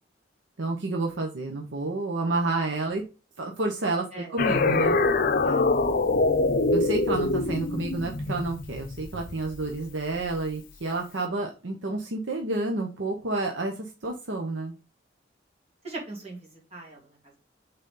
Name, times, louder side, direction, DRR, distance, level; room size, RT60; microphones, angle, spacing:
voice 1, 0.6-3.0 3.4-5.0 6.7-14.7, right 2 dB, 75° right, 1 dB, 1.0 m, -30 dB
sound 1, 4.4-9.7, left 3 dB, 50° left, 0.6 m, -24 dB
voice 2, 15.8-17.4, right 2 dB, 35° right, -2 dB, 2.8 m, -40 dB
6.6 x 4.0 x 3.8 m, 0.31 s
head